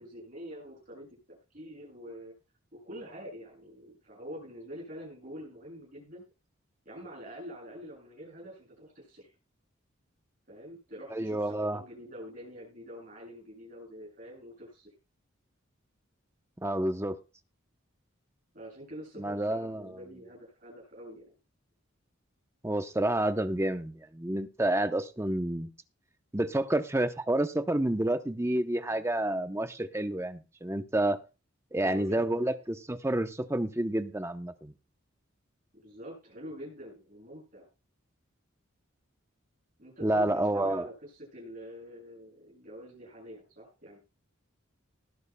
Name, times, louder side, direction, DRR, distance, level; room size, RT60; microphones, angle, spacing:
voice 1, 0.0-2.3 2.7-6.2 6.8-9.3 10.5-14.9 18.5-21.3 31.8-32.4 35.7-37.7 39.8-44.0, equal, 40° right, -3 dB, 6.9 m, -46 dB
voice 2, 11.1-11.8 16.6-17.2 19.2-20.0 22.6-25.7 26.3-31.2 31.7-34.7 40.0-40.9, right 1 dB, 15° right, 9 dB, 0.7 m, -29 dB
19.0 x 11.0 x 2.2 m, 0.29 s
head